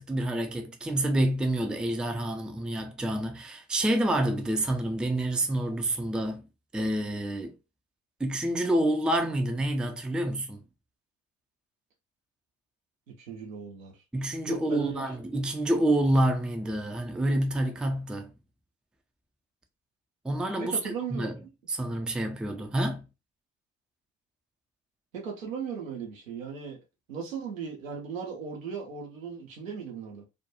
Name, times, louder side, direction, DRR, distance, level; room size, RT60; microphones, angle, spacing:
voice 1, 0.0-6.5 6.7-7.6 8.2-10.6 14.1-18.3 20.2-21.3 21.7-23.1, right 1 dB, ahead, 0.4 m, -28 dB
voice 2, 13.2-13.9 14.5-15.1 20.6-21.3 25.1-26.8 27.1-30.2, right 6 dB, 80° right, 0.8 m, -37 dB
2.5 x 2.2 x 2.8 m
figure-of-eight pair, 50°, 39 cm